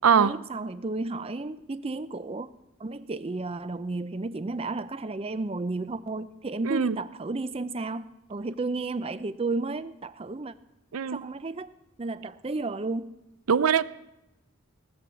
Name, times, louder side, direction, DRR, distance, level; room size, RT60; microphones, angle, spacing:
voice 1, 0.1-2.5 2.8-10.5 11.1-11.7 12.0-13.1, right 3 dB, 25° right, 14 dB, 0.5 m, -32 dB
voice 2, 6.6-7.0 10.9-11.2 13.5-13.8, right 7 dB, 85° right, 17 dB, 0.5 m, -22 dB
18.0 x 7.6 x 6.9 m, 0.95 s
head